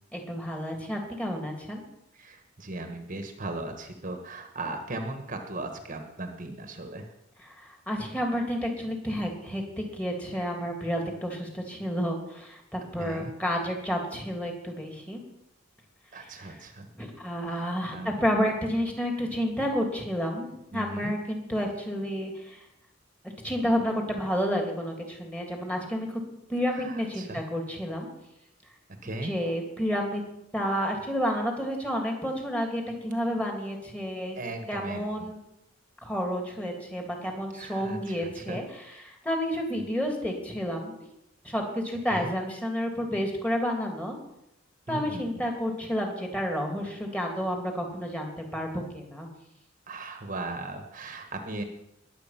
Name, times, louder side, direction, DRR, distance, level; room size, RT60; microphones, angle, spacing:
voice 1, 0.1-1.8 7.4-15.2 16.4-16.5 17.0-22.6 23.4-26.2 26.5-28.1 29.2-30.2 30.5-34.4 34.7-35.4 36.0-40.9 41.4-44.2 44.9-49.3, equal, 5° left, 2 dB, 2.8 m, -30 dB
voice 2, 2.1-7.1 13.0-13.3 16.1-16.9 17.5-18.1 20.7-21.1 26.7-27.4 29.0-29.3 34.3-35.0 37.5-38.6 39.8-39.9 42.1-42.3 44.9-45.4 49.9-51.6, right 2 dB, 40° right, 5 dB, 1.4 m, -37 dB
21.0 x 8.2 x 5.9 m, 0.83 s
head